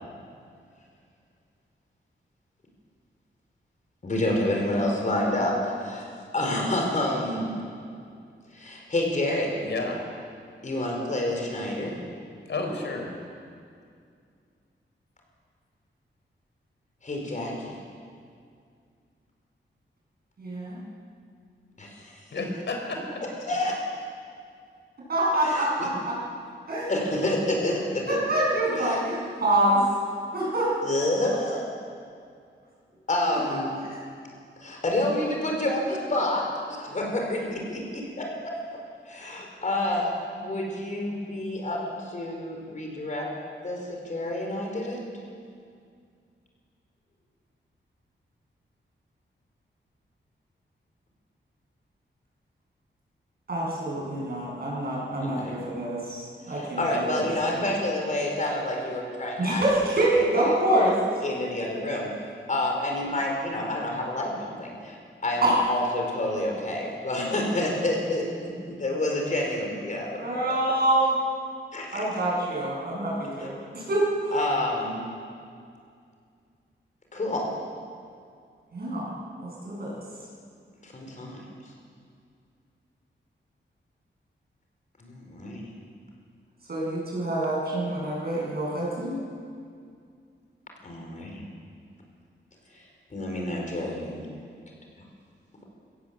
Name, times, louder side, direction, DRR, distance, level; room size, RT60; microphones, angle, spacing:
voice 1, 4.0-7.5 8.5-9.6 10.6-12.0 17.0-17.7 21.8-22.2 23.5-23.8 25.4-25.9 26.9-28.2 28.8-29.0 30.8-31.7 33.1-33.7 34.6-38.3 39.0-43.3 43.6-45.0 55.2-55.5 56.5-59.9 60.3-60.5 61.2-62.1 62.5-65.0 65.2-70.2 70.4-70.5 71.7-72.1 73.4-73.5 74.3-75.1 77.1-77.5 80.8-81.4 85.0-85.6 90.8-91.4 92.7-92.8 93.1-94.4, left 1 dB, 40° left, 0 dB, 4.6 m, -28 dB
voice 2, 9.6-10.0 12.5-13.1 22.3-23.2 56.9-57.7, left 3 dB, 70° left, 2 dB, 4.1 m, -32 dB
voice 3, 20.4-20.8 25.1-26.2 26.7-26.9 28.1-29.8 30.3-30.7 33.3-33.6 53.5-57.3 59.4-60.9 65.4-65.5 70.2-71.2 71.9-74.4 78.7-79.1 79.4-80.0 86.7-89.2, right 1 dB, 50° right, -4 dB, 7.6 m, -26 dB
24.5 x 17.0 x 7.8 m, 2.3 s
wide cardioid pair, 170°, 20 cm